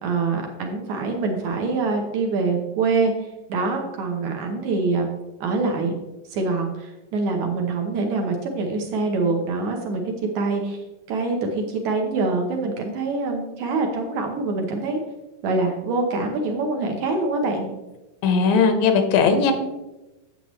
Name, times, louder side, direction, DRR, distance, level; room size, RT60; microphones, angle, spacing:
voice 1, 0.0-3.1 3.5-5.1 5.4-5.9 6.3-10.0 10.4-10.8 11.1-15.0 15.4-17.7, right 3 dB, 70° right, 2 dB, 2.0 m, -24 dB
voice 2, 18.2-19.5, left 5 dB, 90° left, 7 dB, 2.6 m, -18 dB
9.6 x 7.6 x 3.1 m, 1.0 s
omnidirectional pair, 4.0 m